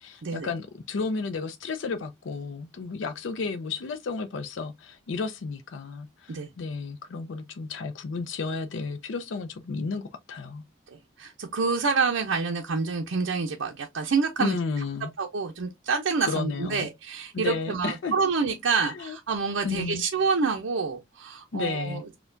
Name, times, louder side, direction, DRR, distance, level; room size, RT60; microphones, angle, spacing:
voice 1, 0.0-10.6 14.4-15.1 16.2-16.9 17.3-18.1 18.8-19.2 19.6-20.0 21.5-22.0, left 4 dB, 75° left, 0.4 m, -32 dB
voice 2, 11.2-14.6 15.2-22.1, right 4 dB, 80° right, 0.5 m, -27 dB
4.3 x 2.2 x 2.5 m
head